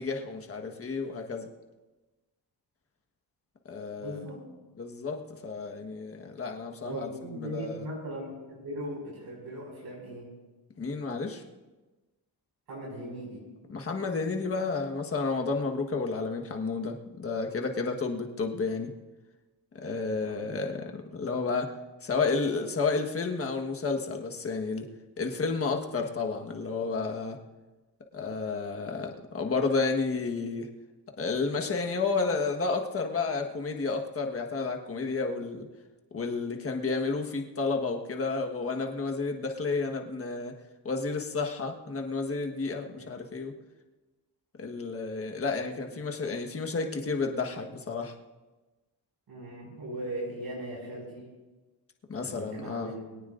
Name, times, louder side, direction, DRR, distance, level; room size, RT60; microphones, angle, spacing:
voice 1, 0.0-1.5 3.7-4.2 4.8-7.8 10.8-11.4 13.7-18.9 19.8-21.7 22.0-24.9 25.2-27.4 28.1-30.7 31.2-35.7 36.1-40.5 40.8-43.5 44.6-48.1 52.1-52.9, left 4 dB, 35° left, 3 dB, 1.4 m, -31 dB
voice 2, 4.0-4.4 6.8-10.3 12.7-13.4 20.2-20.5 42.9-43.0 45.6-45.7 49.3-51.2 52.2-53.2, right 1 dB, 65° right, -4 dB, 5.7 m, -39 dB
23.5 x 17.5 x 2.6 m, 1.2 s
wide cardioid pair, 170°, 40 cm